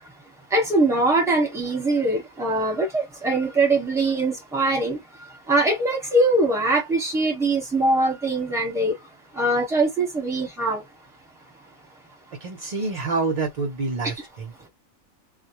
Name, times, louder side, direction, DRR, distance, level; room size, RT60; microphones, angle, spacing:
voice 1, 0.5-5.0 5.5-8.9 9.4-10.8, right 2 dB, 5° right, 0.8 m, -22 dB
voice 2, 12.4-14.5, right 3 dB, 55° right, 0.4 m, -27 dB
2.3 x 2.1 x 2.8 m
omnidirectional pair, 1.5 m